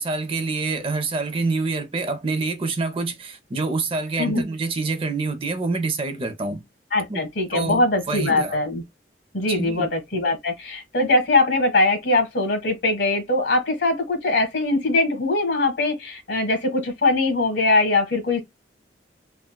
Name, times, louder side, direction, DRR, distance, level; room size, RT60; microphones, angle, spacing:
voice 1, 0.0-6.6 7.1-7.2 7.5-8.6 9.5-9.9, right 3 dB, 30° right, 0.5 m, -26 dB
voice 2, 6.9-8.8 9.3-18.4, left 2 dB, 85° left, 1.4 m, -21 dB
3.7 x 2.2 x 2.2 m
head